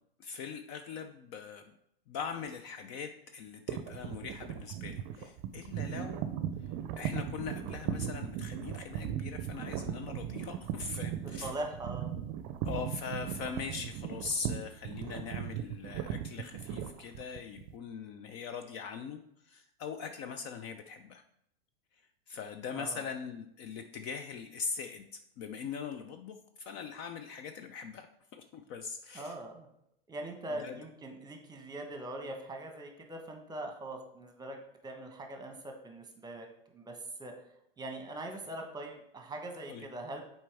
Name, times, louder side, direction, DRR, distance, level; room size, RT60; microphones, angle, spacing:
voice 1, 0.2-1.7 2.1-6.3 7.0-11.5 12.6-21.2 22.3-25.0 25.4-28.1 28.3-29.3 30.5-30.8 39.7-39.9, left 6 dB, 40° left, 7 dB, 0.5 m, -41 dB
sound 1, 3.7-17.7, right 9 dB, 45° right, 0.6 m, -37 dB
voice 2, 11.4-12.1 22.7-23.0 29.1-29.7 30.1-37.3 37.8-40.2, right 1 dB, 15° right, 4 dB, 1.0 m, -42 dB
7.4 x 4.3 x 3.4 m, 0.75 s
hypercardioid pair, 110°, 30 cm